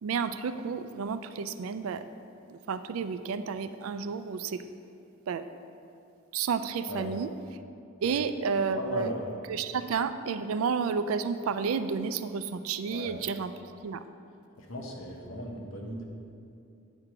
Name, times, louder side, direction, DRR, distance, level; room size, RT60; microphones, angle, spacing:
voice 1, 0.0-2.0 2.5-4.6 5.3-5.4 6.3-7.3 8.0-9.1 9.5-13.5 13.8-14.0, right 5 dB, 85° right, 11 dB, 0.4 m, -31 dB
voice 2, 8.8-9.3 12.9-13.1 14.6-16.0, left 1 dB, 70° left, 0 dB, 1.0 m, -37 dB
8.6 x 4.5 x 5.0 m, 2.6 s
head